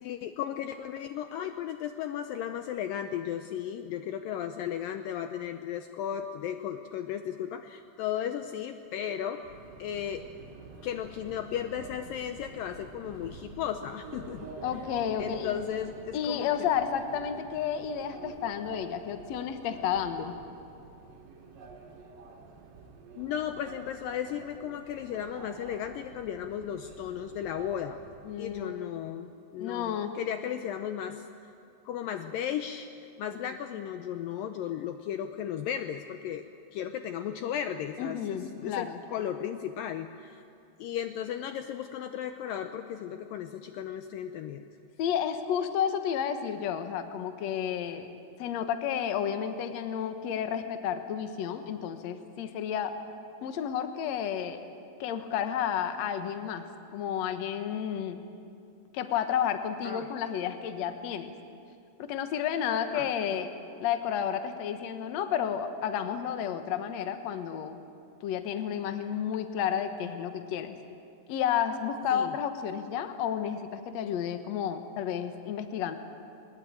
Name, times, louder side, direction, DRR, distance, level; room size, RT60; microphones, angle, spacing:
voice 1, 0.0-9.5 9.8-10.2 10.8-14.5 15.2-16.7 23.2-28.0 28.4-31.2 31.9-40.4 40.8-44.7 59.8-60.1 62.9-63.1 72.1-72.3, left 9 dB, 90° left, 7 dB, 1.9 m, -35 dB
Subway metro underground, 9.4-28.7, right 4 dB, 55° right, 3.5 m, -48 dB
voice 2, 14.6-15.6 16.1-20.3 28.2-29.0 29.6-30.1 33.5-33.6 38.0-39.0 45.0-48.1 48.4-52.9 53.4-54.6 55.0-56.6 56.9-58.2 58.9-61.3 62.0-63.5 63.8-67.8 68.2-70.7 71.3-75.9, left 8 dB, 75° left, 8 dB, 1.6 m, -31 dB
21.5 x 20.5 x 8.9 m, 2.5 s
omnidirectional pair, 5.0 m